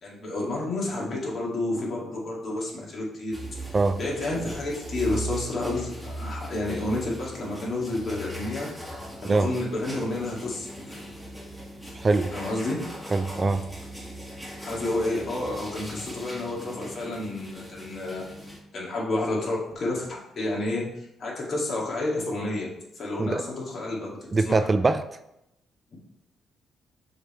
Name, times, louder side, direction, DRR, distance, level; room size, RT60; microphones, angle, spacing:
voice 1, 0.0-3.3 4.0-11.0 12.3-12.8 14.6-18.2 18.7-22.7 22.9-24.7, left 2 dB, 50° left, -4 dB, 2.2 m, -30 dB
sound 1, 3.3-18.6, right 1 dB, 5° right, 1.6 m, -39 dB
voice 2, 12.0-12.3 13.1-13.6 23.2-23.4 24.3-25.0, right 3 dB, 30° right, 10 dB, 0.3 m, -22 dB
6.4 x 3.6 x 4.4 m, 0.83 s
cardioid pair, 90°, 0 cm